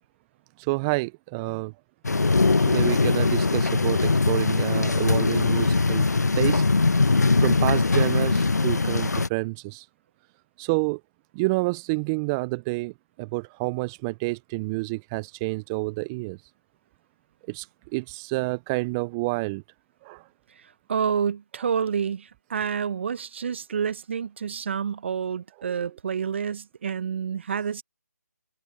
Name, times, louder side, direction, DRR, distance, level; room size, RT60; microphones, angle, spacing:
voice 1, 0.6-1.7 2.6-6.1 6.4-6.6 7.0-9.9 10.6-11.0 11.3-12.9 13.2-16.4 17.5-17.7 17.9-19.6 20.0-20.3 21.6-21.7 25.6-25.8, right 25 dB, 15° right, 0.4 m, -29 dB
sound 1, 2.0-9.3, left 3 dB, 75° left, 1.1 m, -21 dB
voice 2, 20.9-27.8, right 7 dB, 45° right, 0.9 m, -28 dB
figure-of-eight pair, 150°, 9 cm